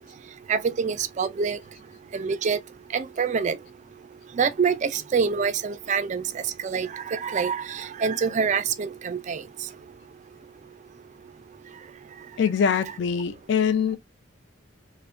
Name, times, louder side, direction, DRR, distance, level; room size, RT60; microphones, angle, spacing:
voice 1, 0.5-1.6 2.1-2.6 2.9-3.6 4.3-9.4, right 6 dB, 35° right, 0.3 m, -26 dB
voice 2, 12.4-14.0, left 7 dB, 55° left, 0.3 m, -23 dB
4.6 x 2.1 x 2.4 m
head